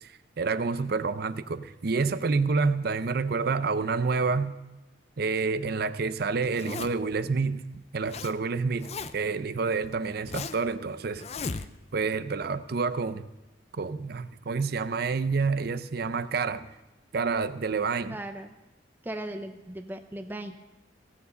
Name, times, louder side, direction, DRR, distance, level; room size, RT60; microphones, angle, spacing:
voice 1, 0.0-4.6 5.2-7.6 7.9-11.2 11.9-13.3 13.7-16.7 17.1-18.2, right 4 dB, 55° right, 13 dB, 0.6 m, -28 dB
Zipper (clothing), 6.4-7.1 7.7-8.3 8.6-9.3 9.8-10.7 11.2-12.0, left 4 dB, 35° left, 0.5 m, -37 dB
voice 2, 18.1-18.5 19.1-20.6, right 1 dB, 10° right, 6 dB, 0.6 m, -37 dB
16.0 x 7.0 x 6.7 m, 1.1 s
head